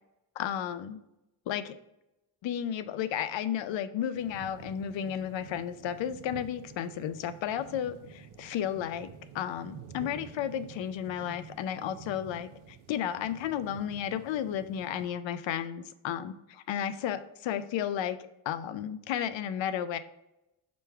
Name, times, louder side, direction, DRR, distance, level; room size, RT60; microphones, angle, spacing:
voice 1, 0.4-1.0 1.5-1.7 2.4-9.1 9.3-18.2 18.5-20.0, left 9 dB, 65° left, 13 dB, 0.5 m, -33 dB
sound 1, 4.1-15.1, right 6 dB, 75° right, 0.6 m, -49 dB
5.1 x 2.3 x 4.4 m, 0.91 s
cardioid pair, 95°, 49 cm